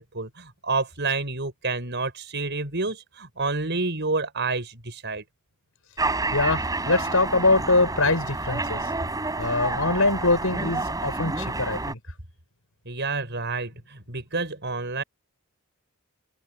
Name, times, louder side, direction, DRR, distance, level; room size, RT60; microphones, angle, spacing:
voice 1, 0.0-5.2 12.9-15.0, right 3 dB, 55° right, 6.3 m, -29 dB
sound 1, 6.0-11.9, right 2 dB, 15° right, 4.5 m, -29 dB
voice 2, 6.3-8.9 9.4-12.0, left 2 dB, 75° left, 6.7 m, -23 dB
head